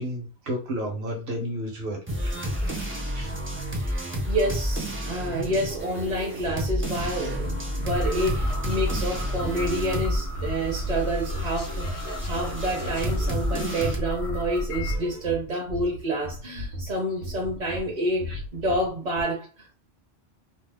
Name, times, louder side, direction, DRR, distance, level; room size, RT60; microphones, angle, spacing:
voice 1, 0.0-2.9 3.1-3.3 18.3-18.4, equal, 65° right, 1.0 m, -33 dB
sound 1, 2.1-10.3 10.5-14.0, equal, 20° right, 0.3 m, -30 dB
voice 2, 3.8-19.7, right 1 dB, 45° right, 0.7 m, -29 dB
sound 2, 6.0-19.2, equal, 90° right, 0.9 m, -38 dB
sound 3, 7.8-15.0, left 1 dB, 50° left, 0.4 m, -33 dB
2.6 x 2.0 x 3.3 m
omnidirectional pair, 1.2 m